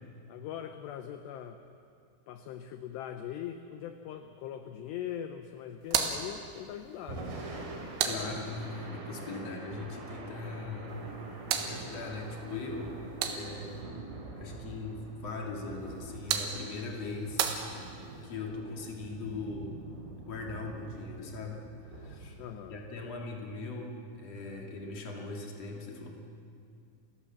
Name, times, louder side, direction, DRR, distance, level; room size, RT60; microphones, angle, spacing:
voice 1, 0.3-1.6 2.3-7.3 22.4-22.8, left 10 dB, 90° left, 8 dB, 2.4 m, -41 dB
sound 1, 5.8-8.9 10.9-13.8 15.8-18.3, right 8 dB, 85° right, 4.2 m, -36 dB
Thunder / Rain, 6.9-23.2, right 2 dB, 70° right, 6.6 m, -45 dB
voice 2, 8.0-11.0 11.5-13.9 14.4-17.5 17.8-19.8 20.2-22.4 22.7-26.2, left 3 dB, 45° left, 1 dB, 2.5 m, -40 dB
29.5 x 15.5 x 7.5 m, 2.4 s
omnidirectional pair, 5.9 m